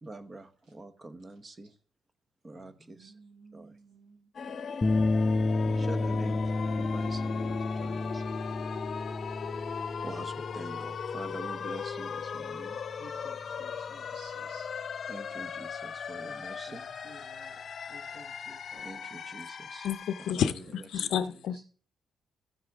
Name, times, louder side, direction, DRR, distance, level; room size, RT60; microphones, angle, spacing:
voice 1, 0.0-1.7 2.4-3.1 3.5-3.7 5.7-6.4 6.7-8.2 10.0-12.8 15.1-16.8 18.8-19.9 20.3-20.4 20.9-21.1, right 2 dB, 25° right, 0.9 m, -45 dB
voice 2, 2.5-4.3 10.4-10.8 13.0-14.7 16.2-16.3 16.7-17.6 17.9-19.0 21.0-21.6, right 1 dB, 90° right, 6.0 m, -56 dB
sound 1, 4.3-20.3, left 6 dB, 50° left, 0.8 m, -38 dB
sound 2, 4.8-13.3, left 2 dB, 25° left, 0.4 m, -31 dB
voice 3, 19.8-21.6, left 9 dB, 80° left, 0.6 m, -30 dB
14.0 x 7.3 x 3.5 m
cardioid pair, 115°, 0 cm